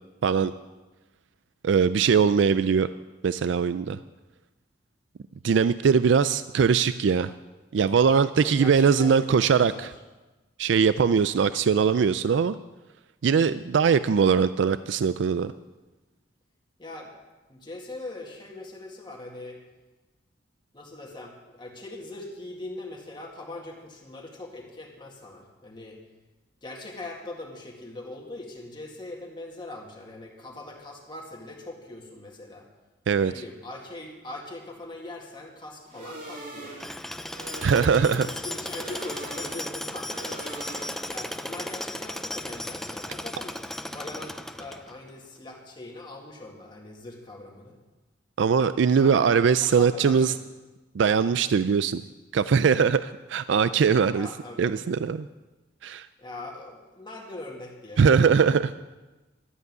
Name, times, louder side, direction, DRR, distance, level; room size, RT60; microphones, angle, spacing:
voice 1, 1.6-2.9 3.2-4.0 5.4-7.3 7.7-9.9 10.6-12.6 13.2-15.5 33.1-33.3 37.6-38.3 48.4-50.3 50.9-52.0 52.3-54.3 54.6-55.3 55.8-56.1 58.0-58.7, right 6 dB, 70° right, 14 dB, 0.4 m, -21 dB
voice 2, 8.3-9.9 16.8-17.1 17.5-19.6 20.7-26.0 26.6-32.7 33.2-36.8 37.6-40.4 41.1-43.6 43.9-47.8 48.9-49.2 49.5-50.4 54.1-54.8 56.2-58.5, left 2 dB, 25° left, 0 dB, 2.0 m, -41 dB
sound 1, 35.9-41.3, right 2 dB, 50° right, 2.5 m, -41 dB
Tools, 36.8-45.1, left 1 dB, ahead, 0.4 m, -36 dB
13.0 x 8.1 x 9.4 m, 1.2 s
head